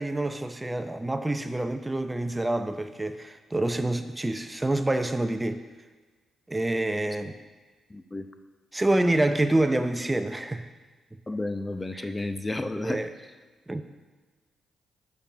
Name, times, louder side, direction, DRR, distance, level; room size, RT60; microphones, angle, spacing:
voice 1, 0.0-5.6 6.5-7.3 8.7-10.7 11.9-12.1 12.8-13.1 13.7-13.8, right 1 dB, 20° right, 9 dB, 0.6 m, -27 dB
voice 2, 7.9-8.3 11.3-13.0, left 2 dB, 20° left, 9 dB, 0.8 m, -32 dB
6.7 x 5.5 x 7.2 m, 1.4 s
supercardioid pair, 50°, 0 cm